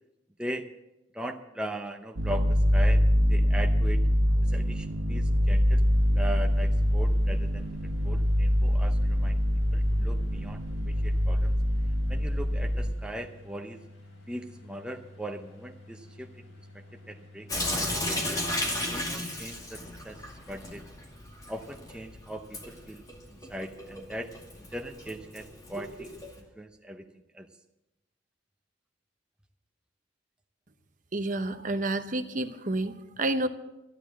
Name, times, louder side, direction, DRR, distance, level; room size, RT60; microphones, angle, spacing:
voice 1, 1.1-3.0 3.3-4.0 4.4-5.9 6.1-7.7 8.0-9.4 9.7-11.5 12.1-13.8 14.3-16.5 16.7-18.4 18.9-20.8 21.5-23.0 23.3-24.3 24.6-27.1 27.3-27.5, right 1 dB, 5° right, 3 dB, 0.6 m, -40 dB
sound 1, 2.2-12.9, equal, 90° right, 1.2 m, -24 dB
sound 2, 5.1-18.0, left 1 dB, 90° left, 4.5 m, -51 dB
Sink (filling or washing) / Drip, 17.5-26.4, left 1 dB, 20° left, 2.2 m, -35 dB
voice 2, 31.1-33.5, right 2 dB, 40° right, 8 dB, 0.9 m, -29 dB
13.0 x 10.5 x 7.4 m, 0.95 s
head